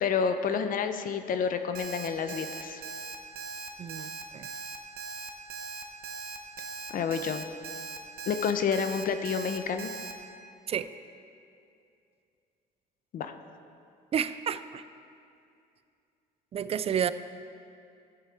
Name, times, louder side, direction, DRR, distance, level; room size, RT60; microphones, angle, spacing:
voice 1, 0.0-2.8 6.9-7.5 8.3-9.9 13.1-13.3, left 6 dB, 55° left, 8 dB, 0.7 m, -29 dB
Alarm, 1.7-10.1, right 4 dB, 65° right, 1.0 m, -39 dB
voice 2, 3.8-4.5 10.7-10.9 14.1-14.8 16.5-17.1, right 8 dB, 35° right, 13 dB, 0.4 m, -30 dB
14.5 x 8.0 x 3.5 m, 2.4 s
cardioid pair, 110°, 17 cm